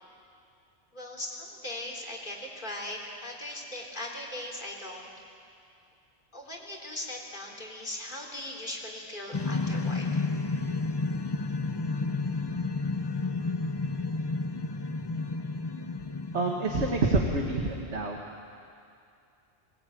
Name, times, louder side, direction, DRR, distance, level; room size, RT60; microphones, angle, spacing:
voice 1, 0.9-5.1 6.3-10.2, left 1 dB, 40° left, -2 dB, 3.7 m, -39 dB
sound 1, 9.3-17.8, left 3 dB, 25° left, 0.7 m, -31 dB
voice 2, 16.3-18.2, right 3 dB, 70° right, 1 dB, 1.9 m, -27 dB
21.0 x 20.0 x 9.2 m, 2.4 s
omnidirectional pair, 1.2 m